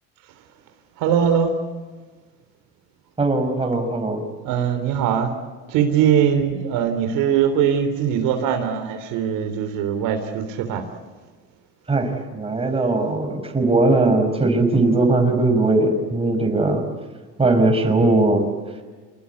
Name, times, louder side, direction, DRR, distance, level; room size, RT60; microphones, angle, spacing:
voice 1, 1.0-1.6 4.4-5.3 5.7-10.9, right 8 dB, 70° right, 6 dB, 3.5 m, -21 dB
voice 2, 3.2-4.2 11.9-16.8 17.4-18.4, right 2 dB, 15° right, 4 dB, 5.6 m, -19 dB
28.0 x 21.0 x 8.4 m, 1.4 s
supercardioid pair, 115°, 35 cm